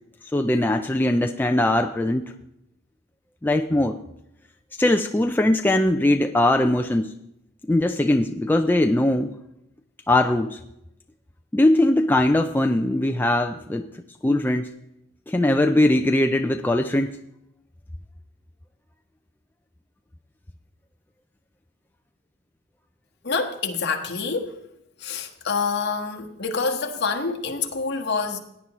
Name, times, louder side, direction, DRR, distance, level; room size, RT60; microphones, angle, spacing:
voice 1, 0.3-2.2 3.4-4.0 4.8-7.1 7.7-9.3 10.1-10.6 11.5-13.9 14.2-14.7 15.3-17.2, left 1 dB, 10° left, 0.3 m, -20 dB
voice 2, 23.2-24.6 25.0-28.4, left 4 dB, 50° left, 1.4 m, -27 dB
17.0 x 9.8 x 3.0 m
head